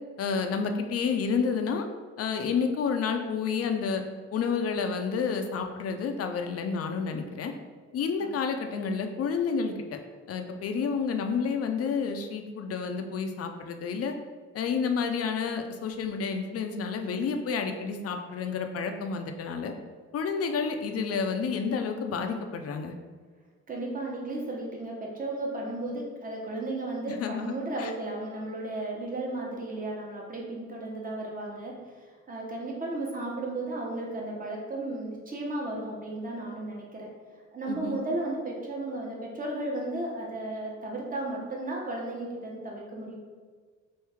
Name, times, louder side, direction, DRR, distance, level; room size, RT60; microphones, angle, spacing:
voice 1, 0.2-1.8 2.2-4.0 4.3-7.5 7.9-10.0 10.3-14.1 14.5-19.7 20.1-22.9 27.1-27.9 37.7-38.0, left 5 dB, 50° left, 5 dB, 0.4 m, -30 dB
voice 2, 23.7-37.1 37.5-43.2, right 2 dB, 30° right, -2 dB, 0.9 m, -34 dB
3.1 x 2.7 x 3.4 m, 1.5 s
cardioid pair, 90°, 30 cm